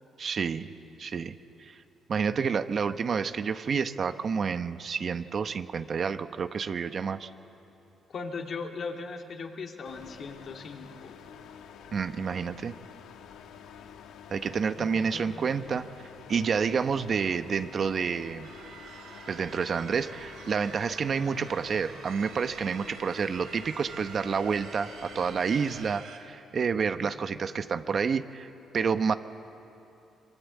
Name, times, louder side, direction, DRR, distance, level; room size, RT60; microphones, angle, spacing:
voice 1, 0.2-0.7 1.0-1.3 1.6-1.8 2.1-7.3 11.9-12.7 14.3-18.5 19.3-29.1, right 6 dB, 50° right, 10 dB, 0.9 m, -29 dB
voice 2, 8.1-11.2 14.8-15.3 27.0-27.4, left 4 dB, 55° left, 3 dB, 2.6 m, -39 dB
sound 1, 9.8-25.9, left 7 dB, 80° left, 1.3 m, -49 dB
sound 2, 18.4-26.2, right 6 dB, 80° right, 2.9 m, -47 dB
26.0 x 23.0 x 8.4 m, 2.9 s
cardioid pair, 90°, 0 cm